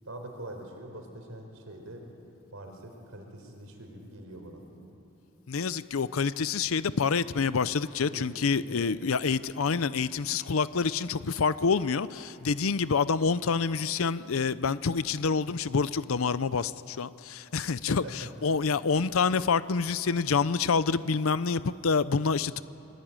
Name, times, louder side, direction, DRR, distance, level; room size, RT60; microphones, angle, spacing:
voice 1, 0.0-2.0 2.5-4.6 8.0-8.3 8.6-8.8 17.9-18.3, right 1 dB, 80° right, 3 dB, 4.4 m, -43 dB
voice 2, 5.5-22.6, left 5 dB, 80° left, 15 dB, 0.6 m, -27 dB
28.5 x 22.5 x 8.9 m, 2.9 s
head